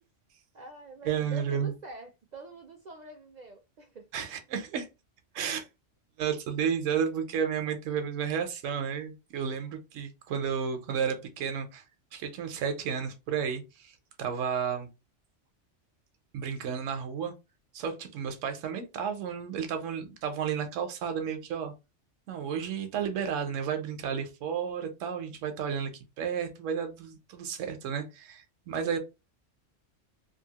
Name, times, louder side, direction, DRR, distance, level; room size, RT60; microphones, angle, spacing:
voice 1, 0.5-4.0 28.8-29.0, right 3 dB, 60° right, 0.4 m, -46 dB
voice 2, 1.0-1.7 4.1-4.9 5.3-5.7 6.2-11.8 12.1-14.9 16.3-17.3 17.7-21.7 22.3-25.9 26.2-29.0, right 7 dB, 85° right, 1.0 m, -32 dB
2.7 x 2.5 x 2.8 m
omnidirectional pair, 1.3 m